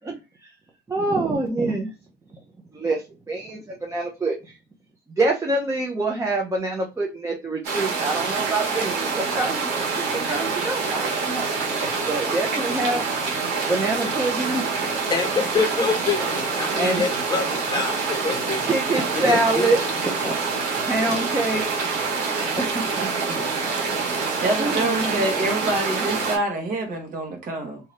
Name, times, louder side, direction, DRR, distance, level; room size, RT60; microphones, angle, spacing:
voice 1, 0.9-1.9 2.7-4.6 5.2-11.5 12.1-13.1 13.7-14.9 16.7-17.0 18.5-19.8 20.1-20.3 20.8-21.6 22.5-23.6 24.6-25.3, right 2 dB, 15° right, 0.6 m, -26 dB
sound 1, 7.6-26.4, right 4 dB, 90° right, 1.2 m, -26 dB
voice 2, 15.1-18.7 19.3-19.7, left 4 dB, 25° left, 1.1 m, -26 dB
voice 3, 24.4-27.8, right 2 dB, 55° right, 1.2 m, -26 dB
2.7 x 2.5 x 3.2 m
cardioid pair, 110°, 17 cm